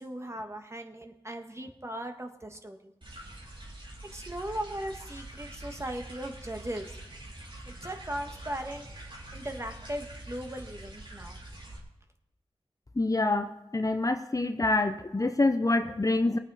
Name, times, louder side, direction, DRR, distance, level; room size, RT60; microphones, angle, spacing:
voice 1, 0.0-2.9 4.1-6.9 7.7-11.4, right 1 dB, 25° right, 4 dB, 1.8 m, -38 dB
sound 1, 3.0-11.8, right 1 dB, 50° right, 3.5 m, -45 dB
voice 2, 13.0-16.4, left 2 dB, 35° left, 7 dB, 0.9 m, -26 dB
20.5 x 8.8 x 4.2 m, 0.89 s
wide cardioid pair, 50°, 10 cm